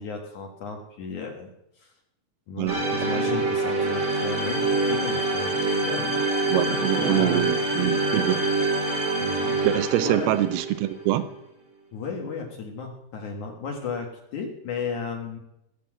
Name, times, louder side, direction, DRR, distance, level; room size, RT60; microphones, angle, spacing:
voice 1, 0.0-1.5 1.8-1.9 2.5-6.1 6.4-6.6 7.0-7.5 9.2-9.7 10.0-10.3 11.9-15.4, left 5 dB, 55° left, 2 dB, 2.7 m, -34 dB
sound 1, 2.7-11.1, right 2 dB, 25° right, 1.8 m, -25 dB
voice 2, 6.5-8.4 9.6-11.3, right 13 dB, 80° right, 12 dB, 2.7 m, -24 dB
19.0 x 7.4 x 7.5 m, 0.81 s
omnidirectional pair, 4.6 m